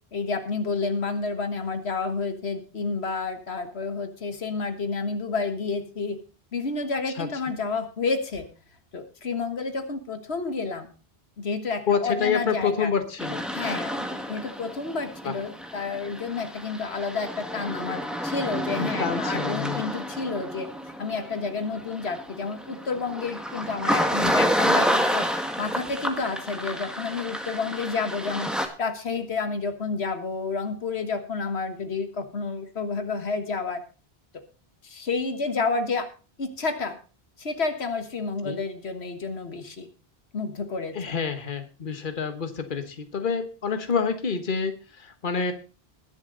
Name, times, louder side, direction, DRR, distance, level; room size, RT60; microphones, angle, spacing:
voice 1, 0.1-6.2 6.5-8.5 8.9-10.9 11.4-12.9 13.5-20.7 21.0-28.5 28.8-33.8 34.3-34.4 34.8-36.1 36.4-37.0 37.4-39.9 40.3-41.1, left 4 dB, 90° left, 8 dB, 1.8 m, -30 dB
voice 2, 11.9-13.5 15.2-15.3 19.0-19.8 38.4-38.6 40.9-45.5, left 6 dB, 55° left, 8 dB, 1.5 m, -27 dB
sound 1, 13.2-28.7, equal, ahead, 1.6 m, -29 dB
21.0 x 7.2 x 3.9 m, 0.35 s
omnidirectional pair, 1.1 m